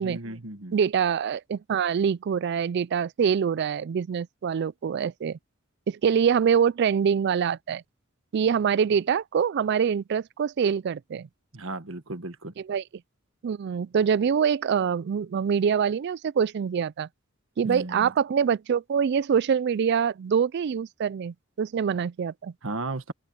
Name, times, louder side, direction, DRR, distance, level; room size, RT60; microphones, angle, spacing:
voice 1, 0.0-0.7 11.5-12.5 17.6-18.1 22.6-23.1, right 2 dB, 70° right, 1.6 m, -35 dB
voice 2, 0.7-5.4 5.9-7.8 8.3-11.3 12.7-12.8 13.4-17.1 17.6-22.5, right 7 dB, 55° right, 0.3 m, -25 dB
open air
head